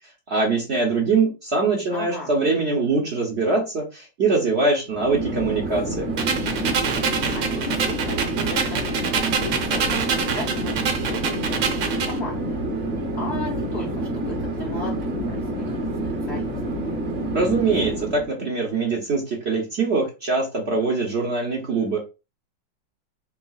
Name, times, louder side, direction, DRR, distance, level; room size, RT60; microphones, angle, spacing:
voice 1, 0.3-6.1 17.3-22.0, right 3 dB, 50° right, -1 dB, 0.7 m, -23 dB
voice 2, 1.9-2.3 7.3-12.6 13.1-16.0 16.2-16.5, left 3 dB, 65° left, -2 dB, 0.6 m, -36 dB
Chatter / Fixed-wing aircraft airplane, 4.9-18.3, right 1 dB, 35° right, 1.1 m, -28 dB
sound 1, 6.2-12.2, right 6 dB, 65° right, 1.3 m, -26 dB
4.7 x 3.0 x 2.3 m, 0.28 s
omnidirectional pair, 2.3 m